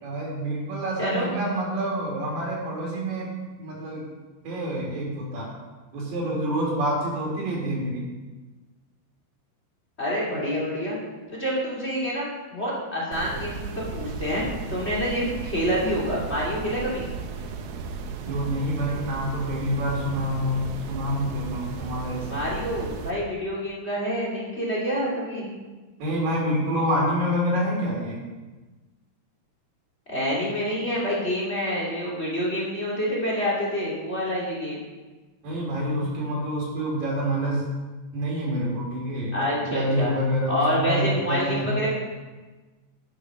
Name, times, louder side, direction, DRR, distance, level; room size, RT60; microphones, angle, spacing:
voice 1, 0.0-3.3 3.6-4.0 4.4-5.5 5.9-8.1 18.2-22.4 26.0-28.2 35.4-37.7 38.1-41.9, equal, 60° right, -2 dB, 4.6 m, -27 dB
voice 2, 10.0-11.0 11.3-14.4 14.7-17.0 22.2-25.5 30.1-34.8 39.3-40.1 40.5-41.9, equal, 20° left, -5 dB, 2.6 m, -27 dB
sound 1, 13.1-23.1, right 5 dB, 75° right, 2.7 m, -35 dB
13.0 x 6.9 x 6.1 m, 1.2 s
omnidirectional pair, 4.5 m